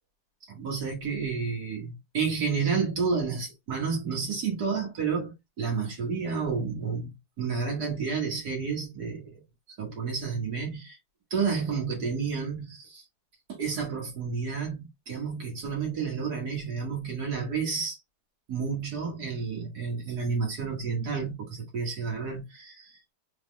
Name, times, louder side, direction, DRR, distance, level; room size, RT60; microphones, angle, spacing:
voice 1, 0.5-7.1 7.4-9.4 9.8-11.0 11.3-13.0 13.5-18.0 18.5-23.0, right 5 dB, 85° right, 2.3 m, -30 dB
4.7 x 3.6 x 2.3 m
omnidirectional pair, 1.7 m